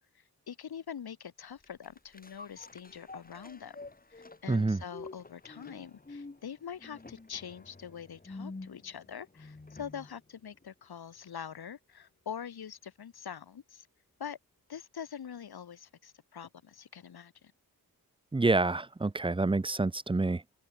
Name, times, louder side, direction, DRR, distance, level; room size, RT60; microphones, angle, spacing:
voice 1, 0.1-3.8 4.1-13.9 14.2-14.4 14.7-17.5, left 8 dB, 85° left, 4.4 m, -44 dB
sound 1, 1.6-10.2 10.6-10.7, left 3 dB, 25° left, 7.0 m, -49 dB
voice 2, 4.5-4.8 18.3-20.6, right 3 dB, 15° right, 0.7 m, -28 dB
wide cardioid pair, 150°, 37 cm